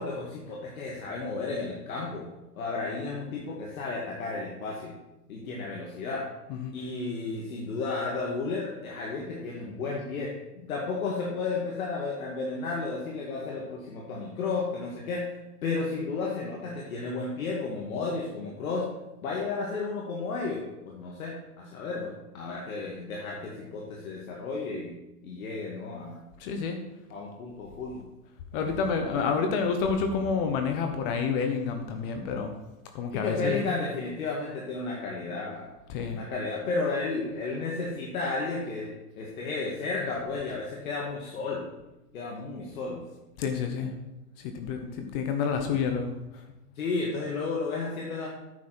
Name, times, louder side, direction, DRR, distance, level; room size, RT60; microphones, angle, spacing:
voice 1, 0.0-2.3 2.6-4.9 5.3-6.3 6.7-15.3 15.6-18.9 19.2-24.9 25.2-26.3 27.1-28.1 28.5-29.3 33.1-35.7 36.1-38.9 39.2-41.7 42.1-43.0 46.8-48.3, left 3 dB, 65° left, -3 dB, 2.1 m, -33 dB
voice 2, 26.4-26.8 28.5-32.5 32.9-33.6 35.9-36.2 43.4-43.9 44.4-46.1, left 5 dB, 35° left, 5 dB, 1.1 m, -29 dB
9.6 x 7.3 x 4.5 m, 0.98 s
hypercardioid pair, 120°, 46 cm